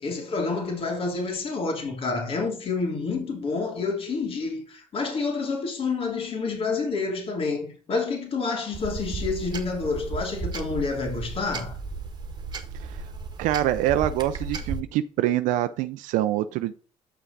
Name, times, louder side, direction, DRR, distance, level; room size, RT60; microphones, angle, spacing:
voice 1, 0.0-11.7, left 4 dB, 45° left, 3.0 m, -28 dB
sound 1, 8.7-14.8, right 4 dB, 35° right, 1.5 m, -34 dB
voice 2, 13.4-16.7, right 13 dB, 85° right, 0.5 m, -25 dB
8.3 x 5.8 x 4.0 m
cardioid pair, 105°, 13 cm